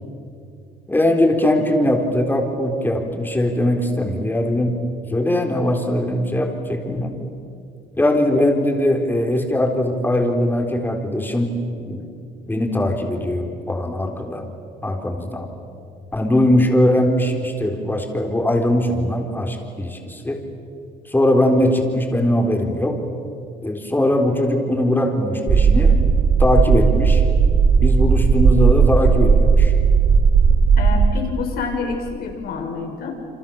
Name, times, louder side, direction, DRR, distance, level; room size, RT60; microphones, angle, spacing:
voice 1, 0.9-4.7 5.1-7.1 8.0-12.1 12.5-14.5 14.8-15.5 16.1-20.4 21.1-23.0 23.6-26.0 26.4-27.2 27.8-29.7, left 1 dB, 10° left, 2 dB, 4.0 m, -20 dB
sound 1, 25.5-31.1, right 5 dB, 45° right, 1.5 m, -15 dB
voice 2, 30.8-33.1, left 5 dB, 65° left, 3 dB, 5.9 m, -27 dB
29.0 x 26.5 x 7.1 m, 2.5 s
cardioid pair, 110°, 17 cm